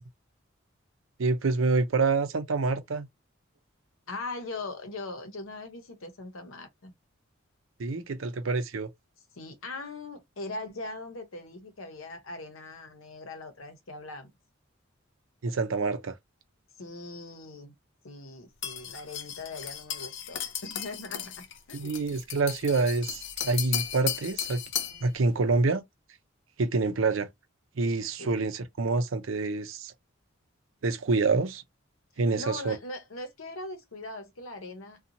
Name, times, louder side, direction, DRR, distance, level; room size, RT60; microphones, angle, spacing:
voice 1, 1.2-3.1 7.8-8.9 15.4-16.1 21.7-24.6 25.0-25.8 26.6-27.3 27.8-29.9 30.8-31.6 32.2-32.8, right 3 dB, 75° right, 0.6 m, -27 dB
voice 2, 4.1-6.9 9.3-14.3 16.8-17.7 18.0-22.0 28.2-28.4 32.3-35.0, left 2 dB, 85° left, 0.8 m, -40 dB
sound 1, 18.6-25.0, left 10 dB, 60° left, 0.5 m, -35 dB
2.6 x 2.3 x 2.8 m
head